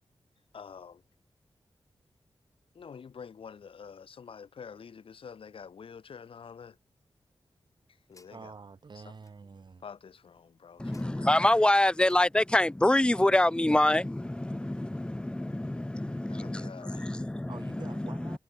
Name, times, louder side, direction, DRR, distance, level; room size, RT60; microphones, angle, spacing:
voice 1, 0.5-1.0 2.7-6.8 8.1-8.5 8.9-9.0 9.8-11.3 13.3-13.4 16.1-17.2, left 6 dB, 75° left, 1.2 m, -47 dB
sound 1, 7.2-13.8, left 3 dB, 35° left, 7.6 m, -69 dB
voice 2, 8.3-9.8 17.5-18.4, right 5 dB, 55° right, 2.7 m, -47 dB
voice 3, 10.8-18.4, left 1 dB, 10° left, 0.6 m, -26 dB
wide cardioid pair, 120°, 9 cm